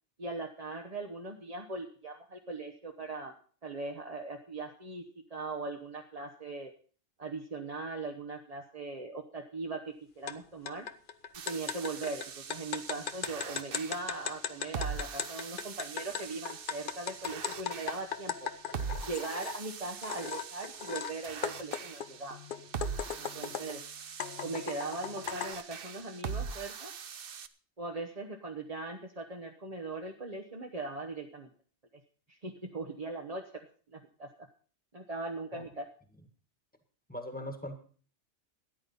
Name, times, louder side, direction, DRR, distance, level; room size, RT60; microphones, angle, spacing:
voice 1, 0.2-3.3 3.6-6.7 7.2-10.9 11.5-18.5 19.0-22.4 23.2-23.8 24.4-26.9 27.8-31.5 32.3-33.4 33.9-34.5 34.9-35.9, right 3 dB, 35° right, 2 dB, 1.1 m, -40 dB
sound 1, 10.3-10.4 10.7-19.6 20.0-21.1 21.4-23.8 24.2-25.6, left 7 dB, 50° left, 0.9 m, -38 dB
sound 2, 11.3-27.5, right 6 dB, 55° right, 0.9 m, -42 dB
voice 2, 37.1-37.8, left 1 dB, 5° left, 7 dB, 1.7 m, -39 dB
13.5 x 10.0 x 5.6 m, 0.43 s
omnidirectional pair, 1.2 m